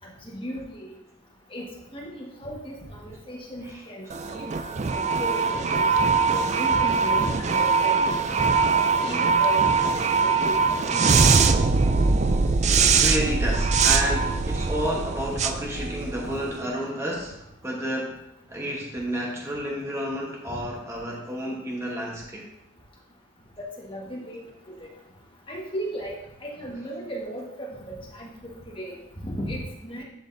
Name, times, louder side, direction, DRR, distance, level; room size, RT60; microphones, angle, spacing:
voice 1, 0.2-0.6 1.5-1.7 1.9-4.1 4.3-4.5 4.9-5.9 6.3-8.1 8.5-11.2 20.5-20.6 23.6-24.4 24.8-24.9 25.5-26.1 26.4-30.0, equal, 25° left, -3 dB, 1.5 m, -36 dB
sound 1, 4.1-16.5, right 5 dB, 35° right, 0.3 m, -22 dB
voice 2, 12.8-17.4 17.6-18.2 18.5-22.5, equal, 15° right, -2 dB, 1.1 m, -30 dB
11.0 x 5.0 x 2.7 m, 0.87 s
head